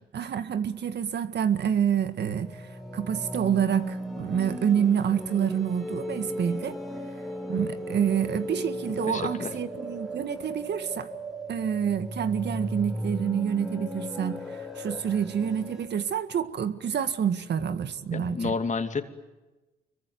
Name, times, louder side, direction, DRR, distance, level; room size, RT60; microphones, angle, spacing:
voice 1, 0.1-6.8 7.5-11.1 11.5-18.5, right 8 dB, 60° right, 1.8 m, -28 dB
sound 1, 1.7-15.9, equal, ahead, 4.1 m, -36 dB
voice 2, 9.1-9.5 18.1-19.0, left 4 dB, 35° left, 2.6 m, -30 dB
25.5 x 23.5 x 9.5 m
cardioid pair, 90°, 20 cm